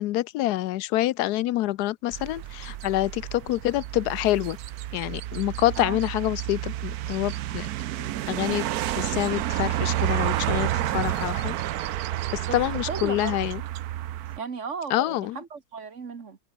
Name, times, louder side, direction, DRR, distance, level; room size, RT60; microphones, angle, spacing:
voice 1, 0.0-4.6 4.9-7.7 8.0-11.6 12.3-13.6 14.9-15.4, left 15 dB, 85° left, 1.1 m, -27 dB
sound 1, 2.1-14.4, right 13 dB, 75° right, 1.2 m, -30 dB
voice 2, 12.9-13.5 14.4-16.4, right 5 dB, 50° right, 1.8 m, -35 dB
omnidirectional pair, 1.7 m